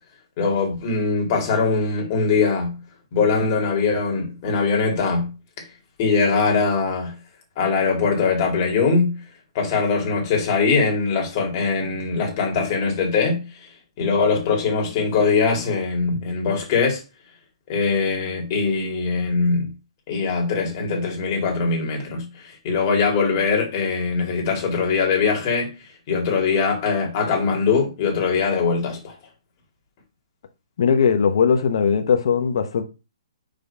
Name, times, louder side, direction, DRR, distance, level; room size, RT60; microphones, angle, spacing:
voice 1, 0.4-2.8 3.1-5.3 6.0-7.1 7.6-9.2 9.5-13.4 14.0-17.0 17.7-19.7 20.1-25.7 26.1-29.1, left 4 dB, 30° left, 2.4 m, -21 dB
voice 2, 30.8-32.8, left 6 dB, 60° left, 0.9 m, -19 dB
5.1 x 3.6 x 5.4 m
hypercardioid pair, 165°, 3 cm